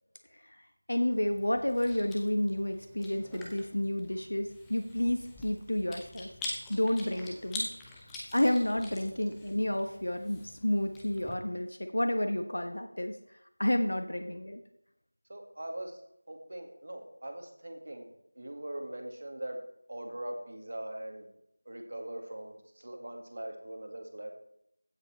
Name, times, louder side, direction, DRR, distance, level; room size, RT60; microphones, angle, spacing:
voice 1, 0.3-6.3 6.7-7.7 8.3-13.2 13.6-14.6, left 1 dB, 75° left, 6 dB, 1.1 m, -30 dB
Chewing mastication, 1.1-11.3, left 2 dB, 5° left, 0.5 m, -45 dB
voice 2, 15.3-16.0 16.3-18.1 18.4-19.6 19.9-21.3 21.7-24.3, right 1 dB, 45° right, 3 dB, 1.9 m, -41 dB
15.5 x 5.2 x 4.4 m, 0.76 s
figure-of-eight pair, 180°, 0 cm